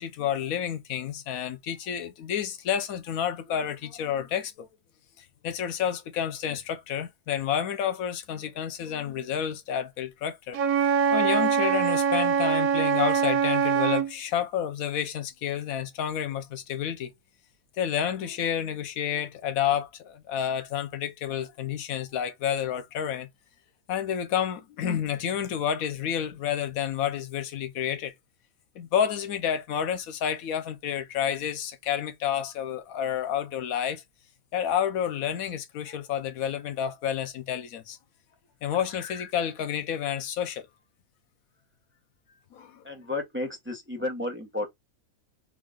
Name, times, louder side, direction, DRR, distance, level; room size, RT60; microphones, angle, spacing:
voice 1, 0.0-4.7 5.2-17.1 17.8-23.3 23.9-28.1 28.8-34.0 34.5-38.0 38.6-40.7 42.5-42.8, left 9 dB, 80° left, 1.1 m, -30 dB
Wind instrument woodwind instrument, 10.5-14.1, right 7 dB, 80° right, 1.1 m, -23 dB
voice 2, 42.8-44.7, left 2 dB, 10° right, 0.8 m, -32 dB
3.7 x 2.4 x 3.6 m
omnidirectional pair, 1.5 m